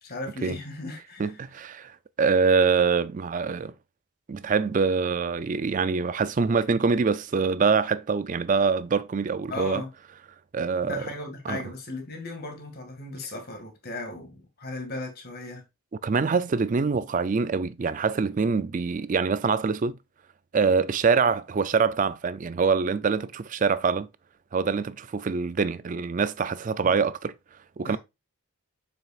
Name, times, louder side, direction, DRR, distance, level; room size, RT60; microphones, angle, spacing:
voice 1, 0.0-1.4 9.5-9.9 10.8-15.6 27.8-28.0, left 1 dB, 45° left, 2.0 m, -36 dB
voice 2, 1.2-3.7 4.3-9.8 10.5-11.1 11.5-11.6 16.0-20.0 20.5-24.1 24.5-27.3 27.8-28.0, right 5 dB, 35° right, 0.3 m, -24 dB
7.3 x 5.8 x 2.4 m
head